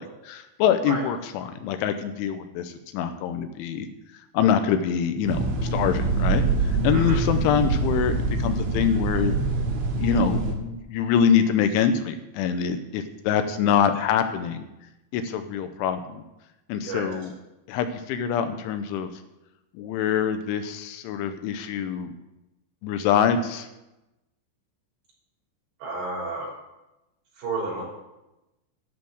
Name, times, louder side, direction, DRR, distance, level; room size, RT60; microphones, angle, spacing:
voice 1, 0.0-3.9 4.3-8.1 8.4-9.3 10.0-14.7 15.1-16.2 16.7-17.3 17.7-19.1 19.7-22.1 22.8-23.7, left 8 dB, 80° left, 9 dB, 3.1 m, -25 dB
sound 1, 5.3-10.5, right 3 dB, 75° right, 4.0 m, -25 dB
voice 2, 25.8-26.5 27.4-27.8, right 3 dB, 60° right, -4 dB, 5.5 m, -31 dB
11.5 x 6.8 x 7.7 m, 0.96 s
omnidirectional pair, 5.6 m